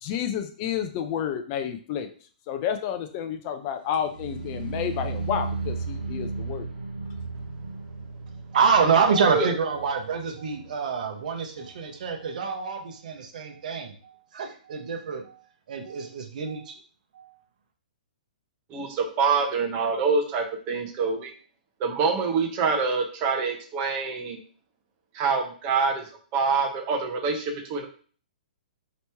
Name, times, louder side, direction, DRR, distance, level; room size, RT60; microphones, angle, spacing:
voice 1, 0.0-2.1 2.5-6.7, left 9 dB, 30° left, 7 dB, 0.4 m, -30 dB
sound 1, 3.9-11.0 11.3-11.7 12.1-12.2, right 3 dB, 90° right, 1.1 m, -35 dB
voice 2, 8.5-15.4 15.7-16.8 17.1-17.3, right 5 dB, 60° right, 3 dB, 0.8 m, -26 dB
voice 3, 18.7-21.3 21.8-24.4 25.1-26.0 26.3-27.9, right 5 dB, 30° right, 3 dB, 0.7 m, -25 dB
3.0 x 2.9 x 3.3 m, 0.42 s
hypercardioid pair, 155°, 5 cm